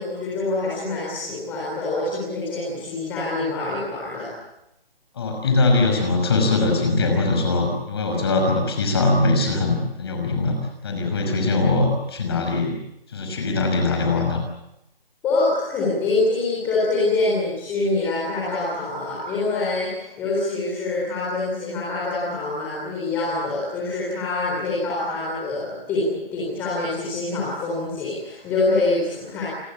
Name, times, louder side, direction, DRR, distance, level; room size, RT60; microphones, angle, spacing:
voice 1, 0.0-4.3 15.2-29.5, left 2 dB, 5° left, -6 dB, 4.0 m, -25 dB
voice 2, 5.1-12.7 13.1-14.4, left 3 dB, 25° left, 3 dB, 5.9 m, -21 dB
28.5 x 21.5 x 8.3 m, 0.84 s
hypercardioid pair, 175°, 30 cm